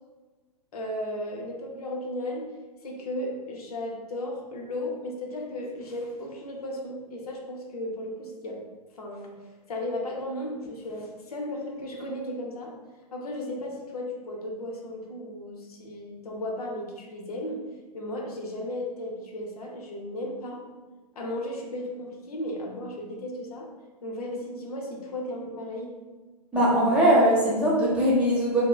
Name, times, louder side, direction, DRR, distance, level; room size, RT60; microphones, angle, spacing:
voice 1, 0.7-2.5 2.8-8.6 9.0-9.3 9.7-12.7 13.1-17.6 17.9-20.6 21.1-23.7 24.0-25.9, left 1 dB, 65° left, -1 dB, 0.6 m, -35 dB
voice 2, 26.5-28.6, equal, 5° right, -8 dB, 0.6 m, -21 dB
3.0 x 2.0 x 2.2 m, 1.3 s
figure-of-eight pair, 120°, 20 cm